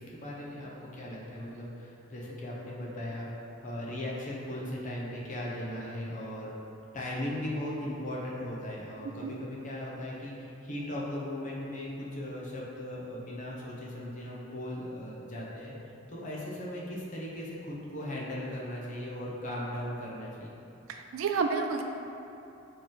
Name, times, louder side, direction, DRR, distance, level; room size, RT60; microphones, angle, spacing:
voice 1, 0.0-6.5 6.9-15.7 16.1-20.5, left 1 dB, 40° left, -4 dB, 0.7 m, -38 dB
voice 2, 20.9-21.8, right 5 dB, 85° right, 4 dB, 0.3 m, -30 dB
4.3 x 3.2 x 3.8 m, 2.9 s
head